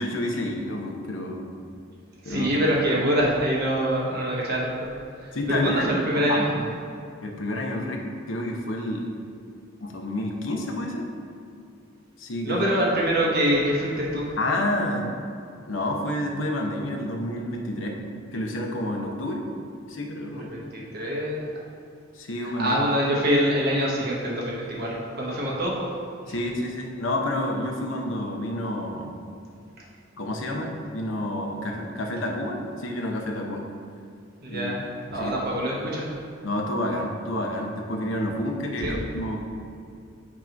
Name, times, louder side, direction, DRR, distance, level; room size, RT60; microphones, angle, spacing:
voice 1, 0.0-1.5 2.2-2.5 5.3-6.7 7.2-9.1 9.8-11.1 12.2-12.7 14.4-15.1 15.7-18.0 18.3-19.5 19.9-20.7 22.1-22.8 26.3-29.1 30.2-33.6 34.5-34.7 35.1-35.5 36.4-39.4, left 1 dB, 80° left, 1 dB, 0.9 m, -29 dB
voice 2, 2.2-4.7 5.2-6.4 12.4-14.4 20.5-21.4 22.4-25.9 26.3-26.4 34.4-34.8 35.1-36.1 38.8-38.9, equal, 55° right, -4 dB, 1.1 m, -25 dB
8.3 x 3.0 x 5.1 m, 2.4 s
head